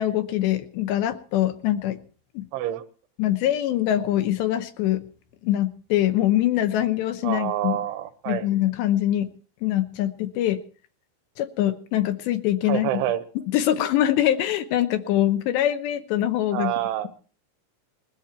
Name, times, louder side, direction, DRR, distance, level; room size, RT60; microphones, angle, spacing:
voice 1, 0.0-2.0 2.3-2.5 3.2-5.0 5.4-7.8 8.3-9.3 9.6-10.6 11.4-13.0 13.5-16.7, left 12 dB, 75° left, 10 dB, 2.9 m, -23 dB
voice 2, 2.5-2.8 7.2-8.5 12.7-13.3 16.5-17.1, right 13 dB, 80° right, 12 dB, 3.5 m, -27 dB
21.0 x 13.5 x 4.4 m, 0.40 s
omnidirectional pair, 5.7 m